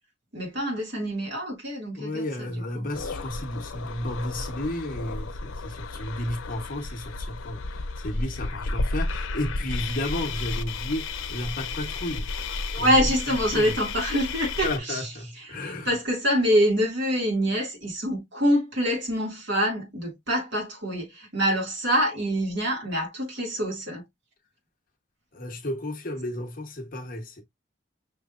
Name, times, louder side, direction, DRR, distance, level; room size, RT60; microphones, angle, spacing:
voice 1, 0.3-2.5 2.7-2.9 12.7-15.0 15.4-15.5 15.9-24.0, equal, 55° right, 2.0 m, -25 dB
voice 2, 2.0-12.3 12.7-13.0 13.3-13.7 14.6-15.9 25.3-27.4, left 1 dB, 45° left, 1.0 m, -33 dB
sound 1, 2.9-14.8, left 3 dB, 85° left, 0.6 m, -32 dB
5.9 x 3.2 x 2.4 m
head